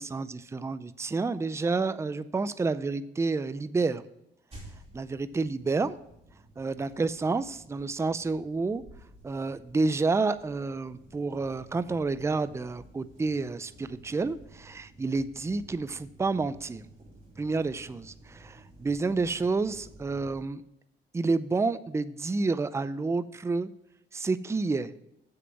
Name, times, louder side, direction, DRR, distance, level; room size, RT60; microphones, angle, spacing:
voice 1, 0.0-4.0 4.9-6.0 6.6-8.8 9.2-16.8 17.4-20.6 21.1-23.7 24.1-24.9, right 3 dB, 15° right, 14 dB, 0.4 m, -29 dB
sound 1, 4.5-20.4, right 1 dB, 30° right, 3.1 m, -53 dB
7.5 x 6.6 x 5.9 m, 0.80 s
cardioid pair, 90°, 20 cm